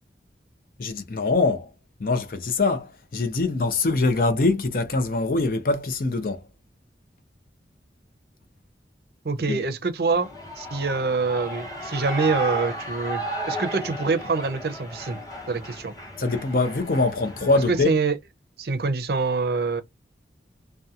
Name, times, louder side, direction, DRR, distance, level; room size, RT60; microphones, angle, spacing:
voice 1, 0.8-1.7 2.0-6.5 9.5-9.6 16.2-18.0, left 3 dB, 50° left, 0.5 m, -23 dB
voice 2, 9.2-10.3 10.6-15.2 15.5-15.9 17.7-18.2 18.6-19.8, right 4 dB, 60° right, 0.5 m, -25 dB
Shout / Cheering, 10.1-17.8, right 1 dB, 20° left, 0.8 m, -34 dB
2.8 x 2.1 x 2.4 m
head